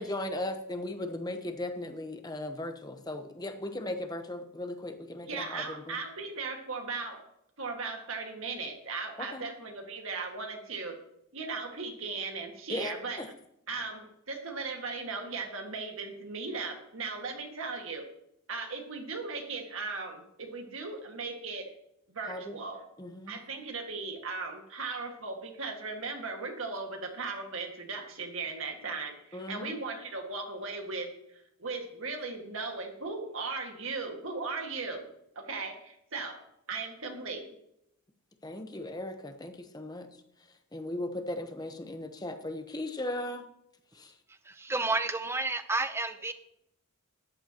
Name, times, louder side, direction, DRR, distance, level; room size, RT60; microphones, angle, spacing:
voice 1, 0.0-6.0 9.2-9.5 12.7-13.3 22.3-22.6 23.0-23.4 29.3-29.8 38.4-40.1 40.7-43.4 43.9-44.1, left 1 dB, 15° left, 7 dB, 0.9 m, -37 dB
voice 2, 5.3-7.2 7.6-11.0 11.3-13.2 13.7-18.1 18.5-21.7 22.1-22.8 23.3-35.1 35.4-36.4 36.7-37.4, right 4 dB, 60° right, 3 dB, 1.8 m, -37 dB
voice 3, 44.5-46.3, right 3 dB, 10° right, 10 dB, 0.6 m, -30 dB
14.0 x 10.0 x 2.9 m, 0.79 s
head